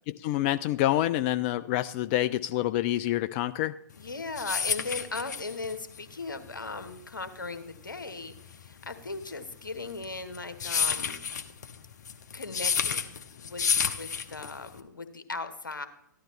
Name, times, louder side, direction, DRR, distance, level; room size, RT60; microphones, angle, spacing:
voice 1, 0.1-3.8, left 14 dB, 35° left, 13 dB, 0.3 m, -27 dB
voice 2, 3.9-11.2 12.3-15.9, left 3 dB, 80° left, 9 dB, 1.2 m, -38 dB
sound 1, 4.0-14.8, left 6 dB, 60° left, 0.9 m, -31 dB
14.5 x 11.5 x 3.2 m, 0.74 s
figure-of-eight pair, 110°, 11 cm